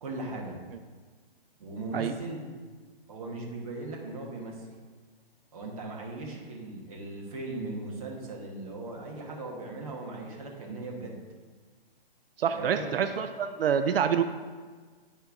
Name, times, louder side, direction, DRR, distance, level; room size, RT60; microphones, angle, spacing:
voice 1, 0.0-0.6 1.6-2.4 3.1-4.7 5.5-11.2 12.5-12.9, right 2 dB, 35° right, -2 dB, 1.2 m, -38 dB
voice 2, 12.4-14.2, right 8 dB, 70° right, 9 dB, 0.5 m, -27 dB
9.7 x 4.5 x 3.5 m, 1.5 s
hypercardioid pair, 170°, 30 cm